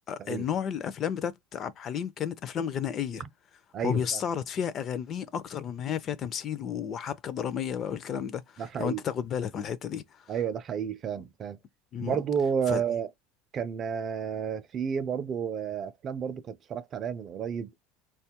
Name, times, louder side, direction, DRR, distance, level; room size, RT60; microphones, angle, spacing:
voice 1, 0.1-3.2 3.8-10.0 11.9-12.2 12.7-12.8, left 8 dB, 35° left, 0.4 m, -32 dB
voice 2, 3.7-4.2 8.6-9.0 10.3-11.6 12.0-13.1 13.5-17.7, right 7 dB, 35° right, 0.4 m, -31 dB
4.3 x 2.3 x 2.8 m
supercardioid pair, 135°, 0 cm